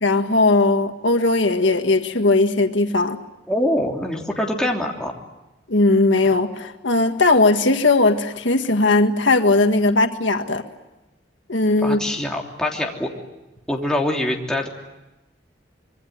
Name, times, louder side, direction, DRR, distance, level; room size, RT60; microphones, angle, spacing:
voice 1, 0.0-3.2 5.7-10.6 11.5-12.0, left 2 dB, 90° left, 6 dB, 1.8 m, -18 dB
voice 2, 3.5-5.1 11.8-13.1 13.7-14.7, left 1 dB, 5° left, -1 dB, 3.2 m, -24 dB
26.0 x 24.0 x 9.3 m, 1.0 s
head